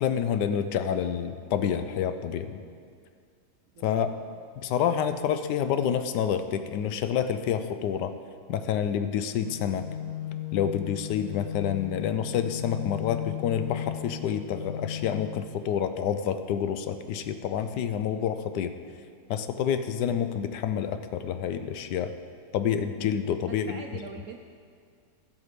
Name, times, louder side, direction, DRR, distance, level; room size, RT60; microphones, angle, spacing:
voice 1, 0.0-2.6 3.8-4.1 4.6-8.1 8.5-9.9 10.5-18.7 19.3-22.1 22.5-24.0, left 8 dB, 75° left, 10 dB, 1.2 m, -28 dB
voice 2, 3.7-4.4 23.4-24.4, right 6 dB, 65° right, 4 dB, 0.8 m, -43 dB
sound 1, 9.4-15.4, left 10 dB, 55° left, 1.4 m, -36 dB
16.5 x 5.9 x 5.1 m, 2.2 s
omnidirectional pair, 1.9 m